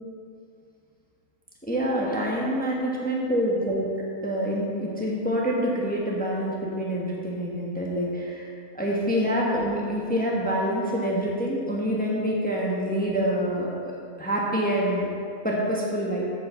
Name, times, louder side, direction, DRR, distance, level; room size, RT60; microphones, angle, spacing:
voice 1, 1.7-3.8 4.2-8.5 8.7-13.9 14.2-15.1 15.4-16.2, equal, 5° left, -3 dB, 1.1 m, -26 dB
8.9 x 5.3 x 6.9 m, 2.4 s
omnidirectional pair, 1.5 m